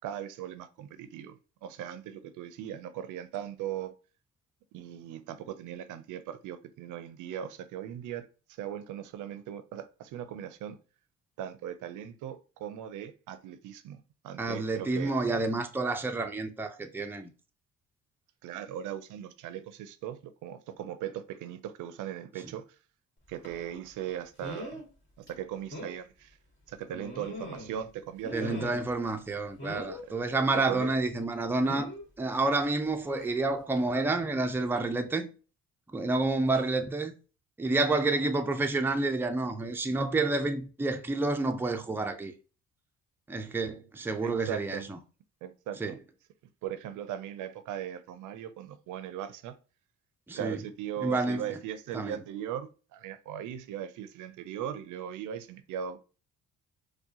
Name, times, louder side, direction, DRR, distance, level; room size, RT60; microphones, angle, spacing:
voice 1, 0.0-3.9 4.7-8.3 8.6-10.8 11.4-15.1 18.4-22.6 23.3-24.8 25.2-26.4 26.7-28.5 30.1-30.2 30.7-30.9 44.2-44.9 45.4-46.0 46.6-49.5 50.4-56.0, right 10 dB, 80° right, 0.5 m, -39 dB
voice 2, 14.4-17.3 28.3-31.9 32.2-35.3 35.9-37.1 37.6-42.3 43.3-45.0 45.8-46.0 50.3-50.6 51.0-51.4 51.9-52.2, right 3 dB, 5° right, 0.4 m, -29 dB
sound 1, 23.4-23.6 24.4-24.9 25.3-25.4 25.7-26.0 26.9-27.8 28.2-29.0 29.6-30.0 31.6-32.0 33.2-33.4 33.8-33.9, equal, 40° left, 1.9 m, -40 dB
4.5 x 2.2 x 2.8 m
cardioid pair, 90°, 30 cm